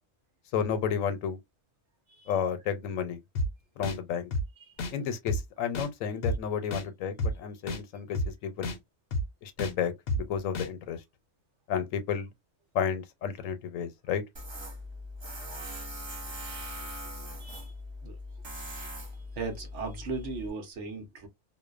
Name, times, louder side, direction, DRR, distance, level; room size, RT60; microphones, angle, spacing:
voice 1, 0.5-1.4 2.3-3.2 3.8-4.3 4.9-8.8 9.4-11.0 11.7-12.3 12.7-14.2, left 7 dB, 85° left, 1.0 m, -32 dB
sound 1, 3.4-3.5 3.8-4.0 4.3-4.4 4.8-4.9 5.3-5.4 5.8-5.9 6.2-6.4 6.7-6.8 7.2-7.3 7.7-7.8 8.2-8.3 8.6-8.8 9.1-9.2 9.6-9.7 10.1-10.2 10.6-10.7, left 1 dB, 60° left, 0.7 m, -29 dB
Tools, 14.4-20.5, equal, 35° right, 0.4 m, -40 dB
voice 2, 17.4-17.7 18.0-18.2 19.4-21.3, right 3 dB, 65° right, 1.1 m, -37 dB
2.6 x 2.1 x 2.3 m
omnidirectional pair, 1.3 m